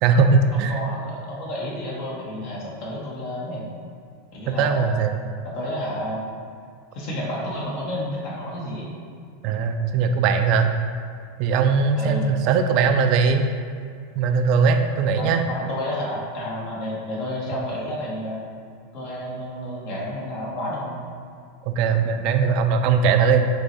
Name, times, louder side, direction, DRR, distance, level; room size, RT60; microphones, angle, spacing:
voice 1, 0.0-0.8 4.5-5.2 9.4-10.7 11.4-13.5 14.2-15.5 21.7-23.5, right 5 dB, 55° right, 6 dB, 0.3 m, -20 dB
voice 2, 0.5-3.6 4.3-5.1 5.4-6.3 6.9-8.9 11.9-12.3 15.2-18.4 18.9-21.0, left 1 dB, 55° left, -4 dB, 1.1 m, -31 dB
4.6 x 3.0 x 2.7 m, 2.3 s
hypercardioid pair, 110°, 0 cm